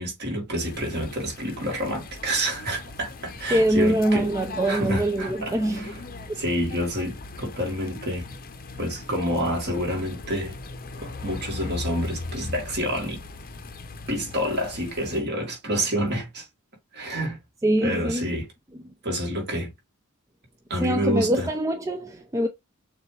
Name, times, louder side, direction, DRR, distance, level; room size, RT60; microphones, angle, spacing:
voice 1, 0.0-4.3 4.7-6.0 6.4-8.3 8.8-10.6 11.0-13.2 14.1-16.5 16.9-17.4 17.8-18.5 19.0-19.7 20.7-21.5, equal, 50° right, 1.9 m, -28 dB
sound 1, 0.6-15.2, left 3 dB, 40° left, 0.7 m, -39 dB
voice 2, 3.5-6.0 17.1-17.2 17.6-18.2 20.8-22.5, right 1 dB, 15° right, 0.4 m, -24 dB
6.6 x 2.4 x 3.2 m
head